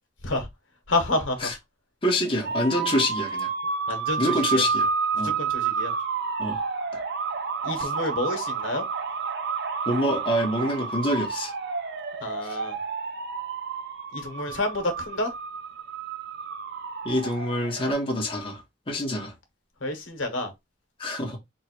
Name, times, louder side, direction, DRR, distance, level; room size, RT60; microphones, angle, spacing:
voice 1, 0.9-1.5 3.9-4.6 5.2-5.9 7.6-8.8 12.2-12.7 14.1-15.3 19.8-20.5, left 2 dB, 90° left, 1.4 m, -29 dB
voice 2, 2.0-3.5 4.2-4.9 5.2-5.3 6.4-6.6 6.9-7.0 7.8-7.9 9.9-11.5 12.4-12.6 17.0-19.3 21.0-21.4, equal, 30° left, 1.3 m, -26 dB
sound 1, 2.4-17.9, right 5 dB, 65° right, 0.6 m, -30 dB
3.7 x 2.5 x 4.4 m
head